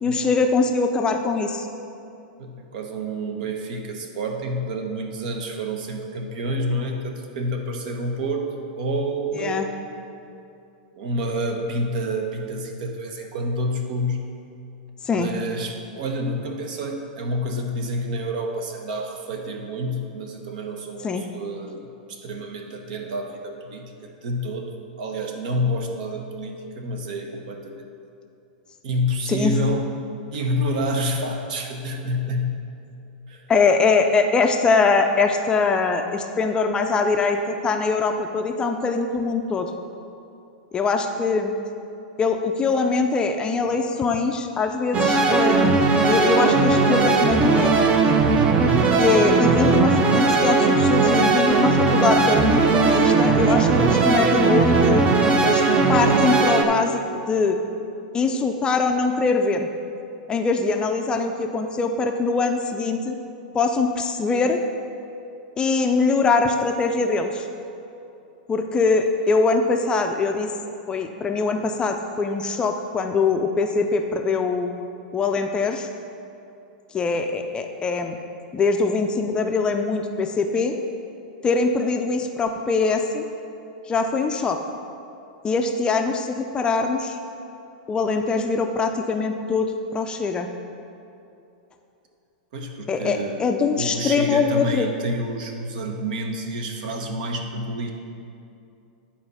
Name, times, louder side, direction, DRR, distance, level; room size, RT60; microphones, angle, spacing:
voice 1, 0.0-1.7 9.4-9.7 15.0-15.3 21.0-21.2 29.3-29.5 33.5-39.7 40.7-41.5 42.2-47.8 48.9-55.1 55.4-57.6 58.1-59.7 60.3-63.2 63.5-64.6 65.6-67.5 68.5-70.5 70.9-74.7 75.1-75.9 76.9-78.2 78.5-80.7 81.4-83.3 83.9-84.6 85.4-87.2 87.9-90.5 92.9-94.9, left 4 dB, 20° left, 5 dB, 0.5 m, -22 dB
voice 2, 2.4-9.7 10.9-14.3 15.1-21.8 22.1-27.9 28.8-29.8 30.3-32.6 33.3-33.5 92.5-93.4 93.7-97.9, equal, 65° right, 3 dB, 1.2 m, -28 dB
sound 1, 44.9-56.6, right 4 dB, 25° right, 0.6 m, -18 dB
10.0 x 4.3 x 5.6 m, 2.7 s
hypercardioid pair, 135°, 5 cm